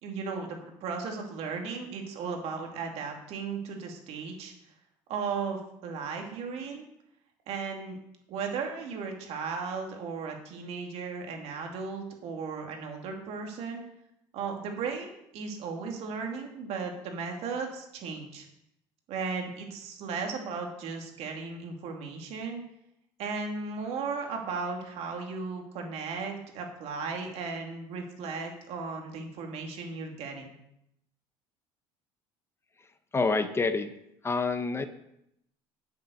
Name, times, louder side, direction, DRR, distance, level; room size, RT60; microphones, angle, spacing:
voice 1, 0.0-4.5 5.1-6.8 7.5-8.0 8.3-13.8 14.3-18.5 19.1-22.6 23.2-30.5, right 5 dB, 70° right, 2 dB, 2.6 m, -36 dB
voice 2, 33.1-33.9 34.2-34.9, left 4 dB, 20° left, 10 dB, 0.8 m, -27 dB
9.2 x 8.0 x 6.4 m, 0.80 s
cardioid pair, 105°, 11 cm